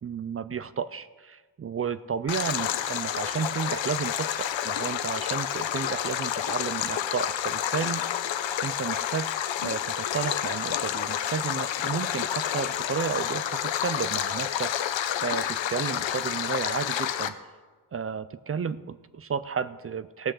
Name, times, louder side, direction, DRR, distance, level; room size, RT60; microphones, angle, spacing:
voice 1, 0.0-8.3 8.6-9.3 9.6-17.4 17.9-20.3, right 6 dB, 35° right, 14 dB, 0.4 m, -32 dB
Stream, 2.3-17.3, left 10 dB, 90° left, 0.8 m, -29 dB
17.5 x 6.4 x 7.7 m, 1.3 s
wide cardioid pair, 150°, 44 cm